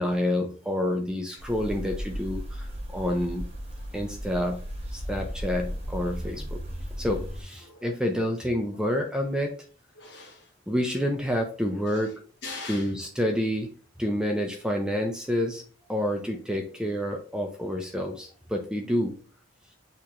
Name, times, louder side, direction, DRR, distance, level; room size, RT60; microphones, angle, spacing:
voice 1, 0.0-2.7 2.9-3.5 3.9-4.6 4.9-6.6 7.0-9.5 10.7-12.1 12.7-13.7 14.0-15.6 15.9-19.1, equal, 5° right, 2 dB, 0.4 m, -28 dB
sound 1, 1.4-7.4, equal, 30° right, 0.8 m, -35 dB
voice 2, 7.6-7.9 9.9-10.5 11.9-13.0 14.1-14.2, left 3 dB, 60° left, 1 dB, 1.1 m, -42 dB
6.5 x 2.8 x 2.4 m, 0.42 s
head